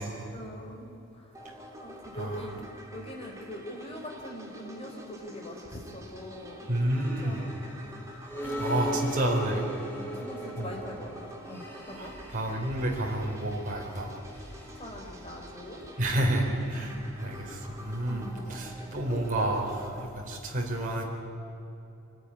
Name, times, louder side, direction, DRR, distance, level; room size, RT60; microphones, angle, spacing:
voice 1, 0.3-1.3 1.8-8.0 8.4-9.6 9.9-12.1 14.7-15.8 16.7-17.0 18.1-18.5, equal, 30° left, 1 dB, 4.3 m, -43 dB
sound 1, 1.3-20.0, equal, 15° right, 3.0 m, -47 dB
voice 2, 2.1-2.5 6.7-7.4 8.6-9.6 10.6-10.7 11.9-14.1 16.0-21.0, right 1 dB, 40° right, -2 dB, 4.1 m, -30 dB
sound 2, 6.9-19.7, equal, 10° left, 3.8 m, -41 dB
26.0 x 18.5 x 9.9 m, 2.8 s
head